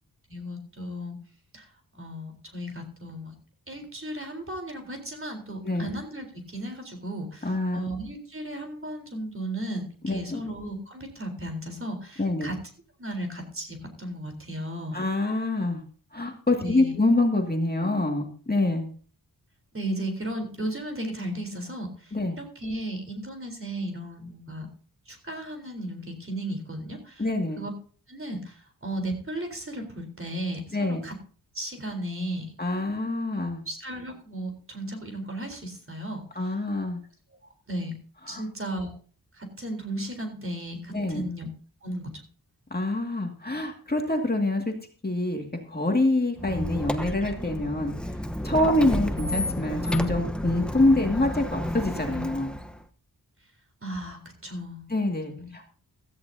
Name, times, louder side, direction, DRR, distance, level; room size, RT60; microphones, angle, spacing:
voice 1, 0.3-1.2 1.5-1.7 1.9-3.3 3.7-12.6 13.0-15.0 16.6-17.0 19.7-24.7 25.1-27.2 27.6-27.7 28.1-31.1 31.5-32.5 33.7-36.2 37.7-37.9 38.3-38.9 39.3-41.5 41.8-42.2 53.8-54.9 55.3-55.5, right 1 dB, 35° right, 4 dB, 3.8 m, -35 dB
voice 2, 7.4-7.8 10.0-10.4 12.2-12.5 14.9-15.8 16.1-18.9 22.1-22.4 27.2-27.6 30.7-31.0 32.6-33.6 36.4-37.0 38.3-38.4 40.9-41.2 42.7-44.7 45.0-47.9 48.4-52.5 54.9-55.6, left 2 dB, 25° left, 2 dB, 2.2 m, -26 dB
Squeak, 46.4-52.8, left 1 dB, ahead, 1.0 m, -31 dB
16.5 x 13.5 x 2.8 m, 0.42 s
wide cardioid pair, 75°, 38 cm